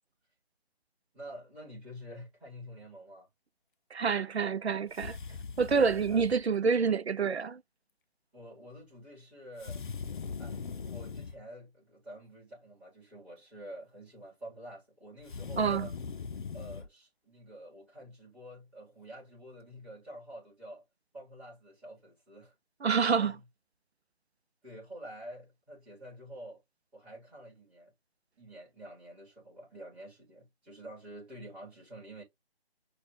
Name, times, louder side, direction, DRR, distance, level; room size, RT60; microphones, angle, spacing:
voice 1, 1.1-3.3 6.1-6.2 8.3-9.8 10.4-15.9 16.5-20.8 21.1-22.6 23.2-23.4 24.6-26.6 26.9-27.9 28.4-32.2, equal, 5° right, 1.5 m, -48 dB
voice 2, 3.9-5.2 5.6-7.6 15.6-15.9 22.8-23.3, right 5 dB, 90° right, 0.6 m, -27 dB
sound 1, 4.9-6.4 9.6-11.4 15.2-16.9, left 5 dB, 50° left, 0.5 m, -40 dB
6.5 x 2.4 x 3.3 m
figure-of-eight pair, 155°, 31 cm